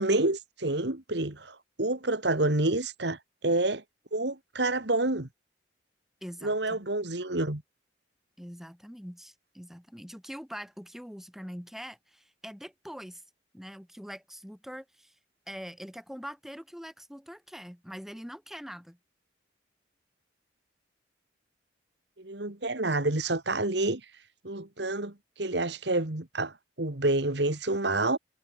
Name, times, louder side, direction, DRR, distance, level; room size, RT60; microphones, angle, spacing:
voice 1, 0.0-3.8 4.1-5.3 6.4-7.6 22.2-24.1 24.4-28.2, right 2 dB, 65° right, 2.0 m, -28 dB
voice 2, 6.2-6.8 8.4-13.2 13.5-15.2 15.5-19.0, equal, ahead, 7.0 m, -43 dB
head